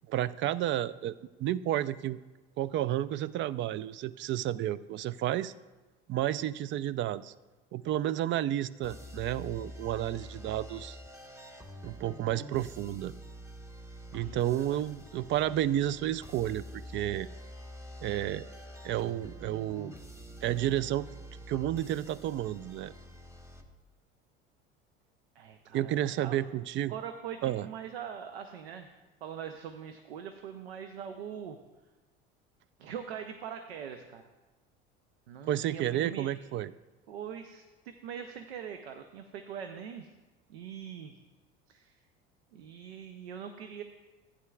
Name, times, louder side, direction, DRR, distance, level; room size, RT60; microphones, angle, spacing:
voice 1, 0.1-1.1 1.4-2.2 2.6-5.5 6.1-7.3 7.7-11.0 11.8-13.1 14.1-17.3 18.0-18.5 18.8-19.9 20.4-21.1 21.5-22.9 25.7-26.9 27.4-27.7 35.5-36.7, right 12 dB, 40° right, 18 dB, 0.4 m, -31 dB
sound 1, 8.8-23.6, equal, 10° right, 1.2 m, -47 dB
voice 2, 14.2-14.8 25.3-26.4 26.9-28.9 29.2-31.6 32.8-34.2 35.3-36.3 37.1-40.1 40.5-41.1 41.7-41.9 42.5-43.8, right 8 dB, 80° right, 7 dB, 0.7 m, -42 dB
15.0 x 9.8 x 2.4 m, 1.2 s
hypercardioid pair, 70°, 30 cm